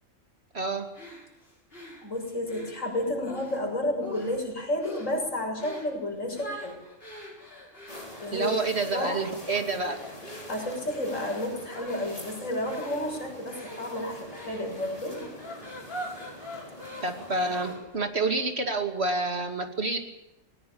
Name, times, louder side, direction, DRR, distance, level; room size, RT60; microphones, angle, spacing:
voice 1, 0.5-0.9 8.3-10.0 17.0-20.0, right 3 dB, 55° right, 5 dB, 2.8 m, -28 dB
sound 1, 0.9-3.6 4.0-4.5 4.8-5.2 5.6-5.9 6.3-18.0, equal, 45° left, 7.7 m, -44 dB
voice 2, 2.0-6.8 8.2-8.5 8.9-9.2 10.5-15.3, left 1 dB, 90° left, 2 dB, 6.8 m, -31 dB
sound 2, 7.9-17.8, left 1 dB, 30° left, 6.2 m, -45 dB
20.0 x 19.0 x 8.7 m, 0.96 s
omnidirectional pair, 1.3 m